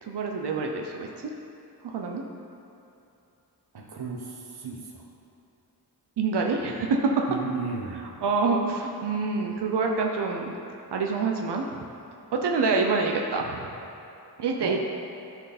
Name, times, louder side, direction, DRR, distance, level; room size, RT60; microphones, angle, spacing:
voice 1, 0.0-1.1 1.8-2.2 6.2-7.1 7.9-10.5 10.9-11.8 12.3-13.7 14.4-14.8, right 4 dB, 85° right, 1 dB, 0.8 m, -26 dB
voice 2, 3.7-4.2 4.6-5.0 7.3-8.2 14.6-14.8, right 5 dB, 70° right, -1 dB, 1.3 m, -34 dB
13.0 x 4.6 x 4.2 m, 2.8 s
wide cardioid pair, 150°, 40 cm